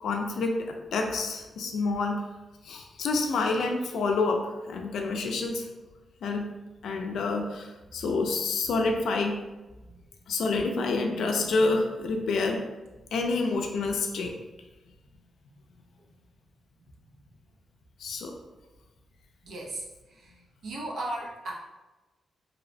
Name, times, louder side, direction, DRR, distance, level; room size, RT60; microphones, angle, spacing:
voice 1, 0.0-2.2 2.6-5.7 6.2-6.4 6.8-9.4 10.3-12.6 13.1-14.4 18.0-18.4, left 3 dB, 85° left, 3 dB, 0.3 m, -28 dB
voice 2, 19.4-21.5, right 1 dB, 85° right, -3 dB, 0.5 m, -37 dB
2.6 x 2.0 x 2.5 m, 1.1 s
wide cardioid pair, 120°, 0 cm